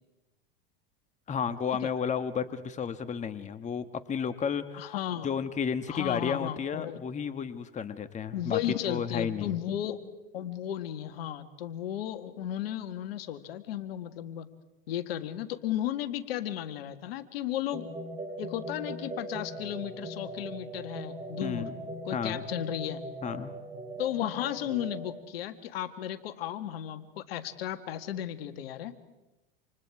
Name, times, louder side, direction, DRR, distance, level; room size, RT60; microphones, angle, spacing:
voice 1, 1.3-4.9 5.2-8.6 8.9-9.6 21.4-21.8 22.1-22.4 23.2-23.5, left 7 dB, 25° left, 11 dB, 1.4 m, -32 dB
voice 2, 4.7-5.3 5.9-7.0 8.3-10.0 10.3-14.5 14.9-17.9 18.4-21.7 22.0-23.0 24.0-28.9, left 11 dB, 75° left, 10 dB, 1.8 m, -34 dB
sound 1, 17.7-25.1, right 1 dB, 20° right, 7.2 m, -40 dB
28.5 x 27.0 x 4.8 m, 1.0 s
hypercardioid pair, 100°, 30 cm